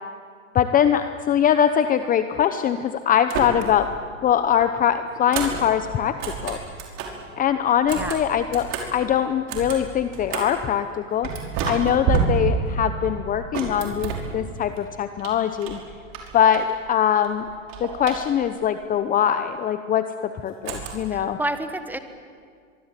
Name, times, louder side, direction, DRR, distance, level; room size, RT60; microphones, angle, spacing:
voice 1, 0.5-3.9 4.2-6.6 7.4-11.3 11.6-15.8 16.3-17.5 17.8-21.4, left 9 dB, 20° left, 10 dB, 0.9 m, -22 dB
sound 1, 3.2-4.0 4.3-7.3 7.7-10.7 11.2-14.8 15.2-16.9 17.2-18.6 20.6-21.3, right 5 dB, 45° right, 5.6 m, -30 dB
voice 2, 21.1-22.0, right 1 dB, 5° right, 9 dB, 1.6 m, -29 dB
24.0 x 24.0 x 9.2 m, 2.1 s
supercardioid pair, 135°, 39 cm